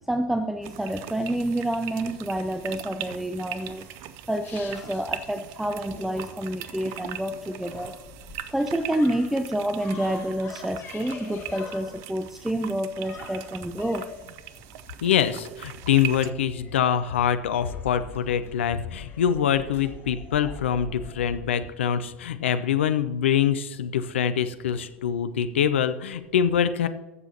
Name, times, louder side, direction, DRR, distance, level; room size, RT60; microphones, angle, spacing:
voice 1, 0.1-3.9 4.3-7.9 8.5-14.0, right 1 dB, 5° right, 7 dB, 0.6 m, -28 dB
sound 1, 0.6-16.3, right 11 dB, 45° right, 0.6 m, -40 dB
sound 2, 3.1-21.5, left 6 dB, 30° left, 1.6 m, -45 dB
voice 2, 15.0-26.9, left 8 dB, 65° left, 11 dB, 0.6 m, -24 dB
20.5 x 7.0 x 2.8 m, 1.1 s
figure-of-eight pair, 85°, 7 cm